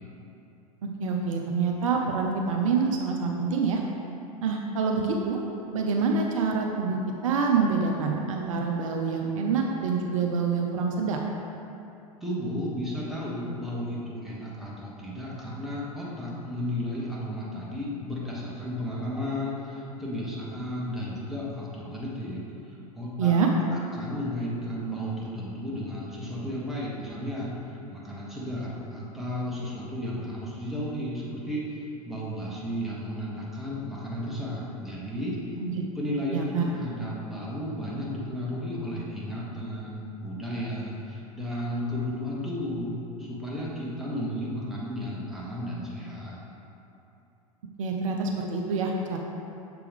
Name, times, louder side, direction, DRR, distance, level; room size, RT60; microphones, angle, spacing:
voice 1, 0.8-3.8 4.4-5.4 5.7-7.0 7.2-11.2 23.2-23.5 35.6-35.7 36.3-36.6 47.8-49.2, right 5 dB, 60° right, 1 dB, 0.6 m, -26 dB
voice 2, 12.2-35.4 35.9-46.4, equal, ahead, -7 dB, 1.4 m, -33 dB
6.8 x 4.5 x 3.6 m, 2.8 s
figure-of-eight pair, 85°, 19 cm